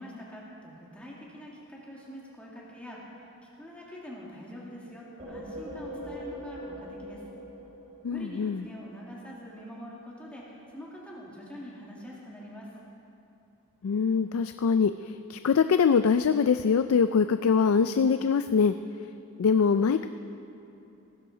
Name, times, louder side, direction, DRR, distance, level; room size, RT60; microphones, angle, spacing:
voice 1, 0.0-7.2 8.1-12.7, equal, 5° left, -5 dB, 1.9 m, -44 dB
sound 1, 5.2-8.8, equal, 30° right, 1.9 m, -42 dB
voice 2, 8.0-8.6 13.8-18.7 19.4-20.1, left 6 dB, 65° left, 10 dB, 0.4 m, -23 dB
18.0 x 15.5 x 3.9 m, 2.8 s
head